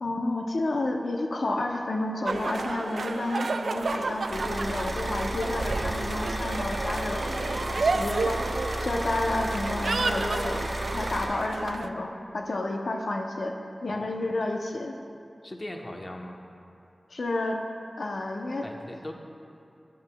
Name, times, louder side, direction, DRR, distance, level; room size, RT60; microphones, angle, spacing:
voice 1, 0.0-10.6 10.9-13.5 13.8-14.9 17.1-17.6 18.0-18.6, left 2 dB, 80° left, 2 dB, 0.5 m, -31 dB
sound 1, 2.3-11.9, right 3 dB, 90° right, 0.3 m, -31 dB
sound 2, 4.3-11.2, equal, 5° right, 1.2 m, -33 dB
voice 2, 15.4-16.4 18.6-19.1, left 1 dB, 35° left, 2 dB, 0.8 m, -39 dB
13.0 x 11.0 x 2.2 m, 2.6 s
wide cardioid pair, 90°, 0 cm